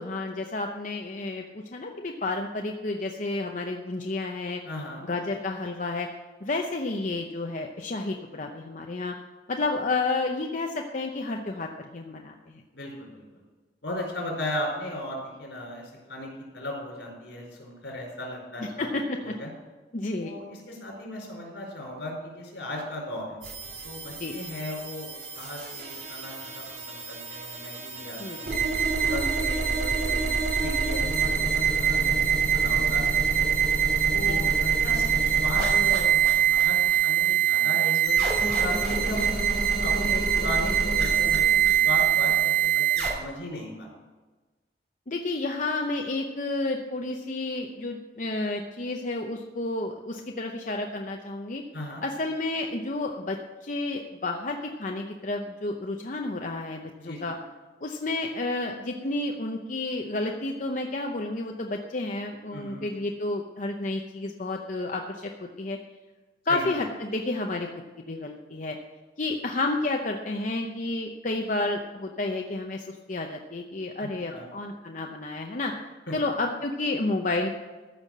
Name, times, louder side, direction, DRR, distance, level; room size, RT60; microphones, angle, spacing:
voice 1, 0.0-4.6 5.1-6.1 6.4-9.1 9.5-12.6 18.8-19.3 19.9-20.3 24.2-24.4 28.2-28.4 34.3-34.6 45.1-51.6 52.0-57.3 57.8-65.8 66.5-67.7 68.1-68.8 69.2-75.7 76.1-77.5, left 2 dB, 45° left, 2 dB, 0.8 m, -31 dB
voice 2, 4.6-5.0 12.7-13.4 13.8-18.9 19.2-19.5 20.2-23.4 23.8-28.7 29.0-33.5 34.1-39.3 39.8-43.9 51.7-52.0 57.0-57.3 62.5-62.9 66.5-66.8 74.0-74.5 76.1-76.2, left 1 dB, 80° left, -1 dB, 4.9 m, -37 dB
sound 1, 23.4-43.1, right 7 dB, 60° right, 3.1 m, -24 dB
14.5 x 5.7 x 7.4 m, 1.3 s
head